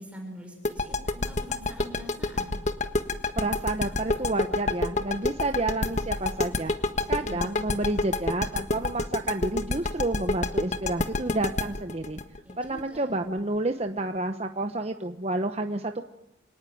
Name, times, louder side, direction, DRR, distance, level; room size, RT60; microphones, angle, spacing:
voice 1, 0.0-2.6 7.0-7.5 12.4-13.1, equal, 5° right, 1 dB, 6.6 m, -44 dB
sound 1, 0.6-13.4, left 2 dB, 40° left, 1.5 m, -27 dB
voice 2, 3.4-6.7 7.1-12.2 12.6-16.0, right 2 dB, 35° right, 6 dB, 1.0 m, -30 dB
26.5 x 18.5 x 9.4 m, 0.80 s
head